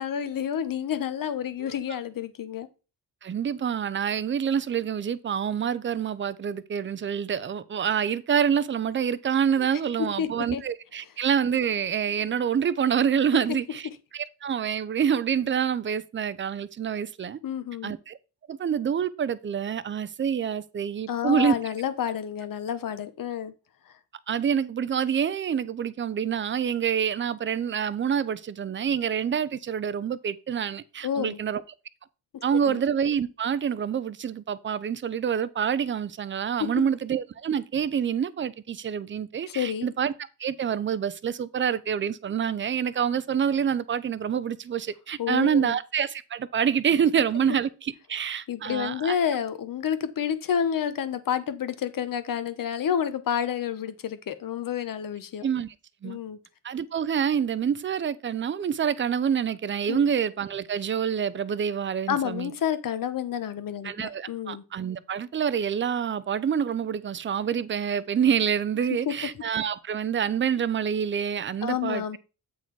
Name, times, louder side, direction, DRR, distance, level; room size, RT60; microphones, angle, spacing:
voice 1, 0.0-2.7 9.6-9.7 10.0-10.6 13.5-13.6 17.4-17.9 21.1-23.5 23.9-24.0 31.0-31.4 32.7-32.8 39.5-39.9 45.2-45.8 48.5-55.5 56.0-56.4 59.9-60.1 62.1-64.6 69.1-69.2 71.6-72.2, left 8 dB, 60° left, 0.9 m, -29 dB
voice 2, 3.2-17.4 17.8-18.2 18.5-21.6 24.3-31.6 32.4-40.1 40.4-49.1 55.4-55.7 56.0-56.2 56.6-62.5 63.8-72.2, right 8 dB, 30° right, 0.4 m, -27 dB
8.3 x 4.1 x 4.5 m
wide cardioid pair, 155°, 38 cm